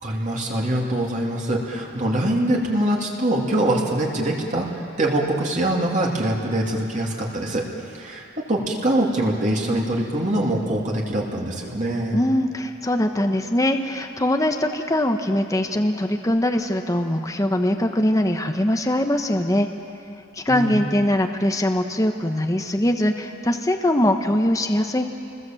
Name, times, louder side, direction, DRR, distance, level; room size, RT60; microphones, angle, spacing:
voice 1, 0.0-12.2 20.5-20.8, right 1 dB, 40° right, -2 dB, 2.9 m, -24 dB
voice 2, 12.1-19.7 20.3-25.0, left 1 dB, 15° left, 5 dB, 1.0 m, -22 dB
29.0 x 20.5 x 7.7 m, 2.6 s
head